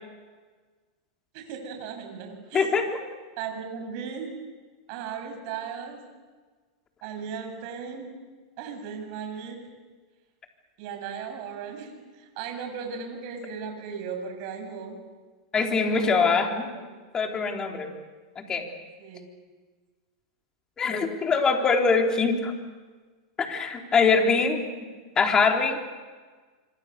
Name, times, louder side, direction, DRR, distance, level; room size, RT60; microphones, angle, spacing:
voice 1, 1.3-2.8 3.4-4.5 4.9-6.0 7.0-8.2 8.6-9.6 10.8-15.0 15.9-16.9 19.0-19.3, right 6 dB, 55° right, 4 dB, 7.2 m, -37 dB
voice 2, 2.5-2.8 15.5-16.7 17.1-17.9 18.4-18.6 20.8-22.5 23.4-24.6 25.2-25.8, left 4 dB, 25° left, 2 dB, 4.0 m, -23 dB
26.5 x 25.5 x 7.0 m, 1.4 s
hypercardioid pair, 115°, 3 cm